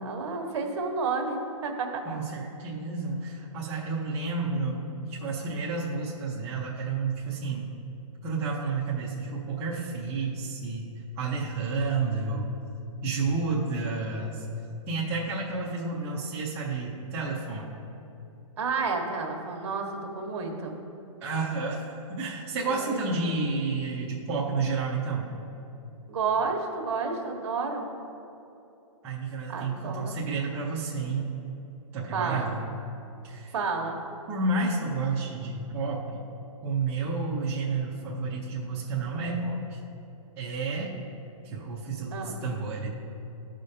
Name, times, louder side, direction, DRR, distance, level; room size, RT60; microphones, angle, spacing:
voice 1, 0.0-1.4 1.6-2.0 18.6-20.8 22.7-23.3 26.1-27.9 29.5-30.2 32.1-32.5 33.5-34.0 42.1-42.4, right 4 dB, 55° right, 2 dB, 1.2 m, -31 dB
voice 2, 2.1-7.7 8.2-12.5 13.0-14.4 14.9-17.7 21.2-25.3 29.0-31.3 31.9-32.6 33.2-33.5 34.3-36.2 36.6-39.8 40.4-40.9 41.4-42.9, right 3 dB, 10° right, -6 dB, 0.5 m, -30 dB
14.0 x 5.0 x 2.7 m, 2.9 s
hypercardioid pair, 170°, 18 cm